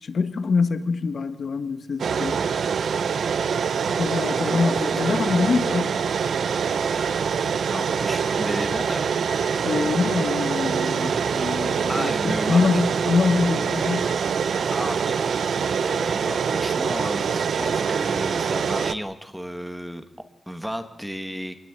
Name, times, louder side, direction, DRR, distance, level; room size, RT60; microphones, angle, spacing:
voice 1, 0.0-2.4 3.9-6.0 9.6-14.2, left 4 dB, 60° left, 1.6 m, -24 dB
sound 1, 2.0-18.9, right 6 dB, 85° right, 0.9 m, -24 dB
voice 2, 4.4-5.5 7.7-9.1 11.9-12.6 14.7-15.2 15.8-20.0 20.5-21.6, equal, 5° right, 1.6 m, -33 dB
25.5 x 20.0 x 8.2 m
wide cardioid pair, 145°, 0 cm